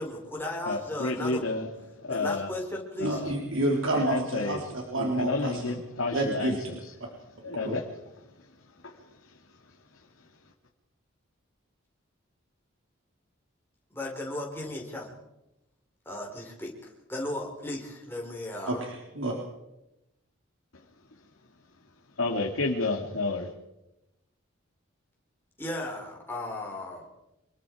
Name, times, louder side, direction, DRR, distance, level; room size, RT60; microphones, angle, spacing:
voice 1, 0.0-1.4 2.1-3.2 13.9-15.1 16.1-18.8 25.6-27.1, left 1 dB, 10° left, -1 dB, 4.5 m, -36 dB
voice 2, 0.7-1.7 2.0-2.5 3.0-3.4 3.9-4.6 5.0-6.8 7.4-7.9 8.8-9.0 22.2-23.5, left 3 dB, 80° left, 1 dB, 2.1 m, -30 dB
voice 3, 3.0-4.6 4.9-5.8 6.1-6.8 7.4-7.8 18.7-19.3, right 1 dB, 70° right, -1 dB, 3.4 m, -29 dB
26.0 x 22.0 x 4.8 m, 0.93 s
head